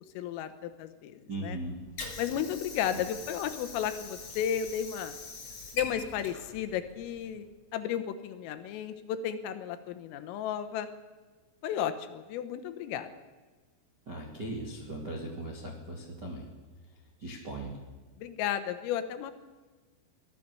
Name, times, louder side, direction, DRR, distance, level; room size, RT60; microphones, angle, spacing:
voice 1, 0.2-1.6 2.2-5.2 5.7-7.5 7.7-10.9 11.6-13.1 18.2-19.3, left 9 dB, 80° left, 10 dB, 3.7 m, -33 dB
voice 2, 1.3-1.8 2.9-3.0 14.0-16.5 17.2-17.8, right 1 dB, 40° right, -1 dB, 1.4 m, -38 dB
Water / Sink (filling or washing), 1.5-7.5, left 3 dB, 40° left, 4.4 m, -43 dB
24.0 x 16.0 x 6.9 m, 1.3 s
omnidirectional pair, 6.0 m